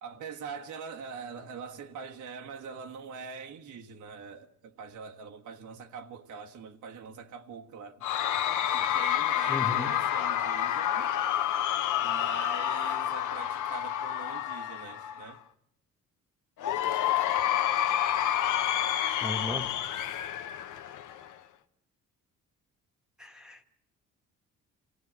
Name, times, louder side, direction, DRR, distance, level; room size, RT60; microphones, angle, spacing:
voice 1, 0.0-8.1 8.7-11.1 12.0-15.4, right 6 dB, 75° right, 1.6 m, -43 dB
Cheering / Crowd, 8.0-15.3 16.6-21.3, left 11 dB, 85° left, 1.1 m, -29 dB
voice 2, 9.5-9.9 19.2-19.7 23.2-23.6, left 2 dB, ahead, 1.5 m, -35 dB
27.5 x 16.5 x 8.7 m
cardioid pair, 90°, 30 cm